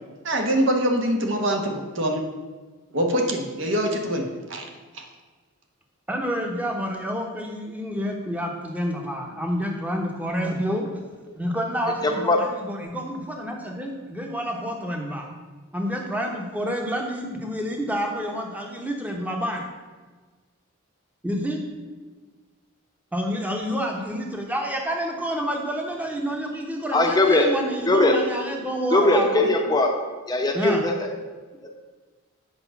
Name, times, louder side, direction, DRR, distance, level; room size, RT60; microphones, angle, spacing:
voice 1, 0.2-2.2 2.9-4.2 4.5-4.6 4.9-5.0, right 1 dB, 60° right, 3 dB, 1.3 m, -24 dB
voice 2, 6.1-10.9 11.3-15.3 15.7-19.6 21.2-21.6 23.1-29.5 30.5-30.8, equal, 5° right, 1 dB, 1.1 m, -28 dB
voice 3, 12.0-12.4 26.9-27.5 27.8-28.2 28.9-29.9 30.3-31.1, left 2 dB, 20° left, 2 dB, 0.8 m, -20 dB
8.0 x 5.0 x 7.0 m, 1.3 s
head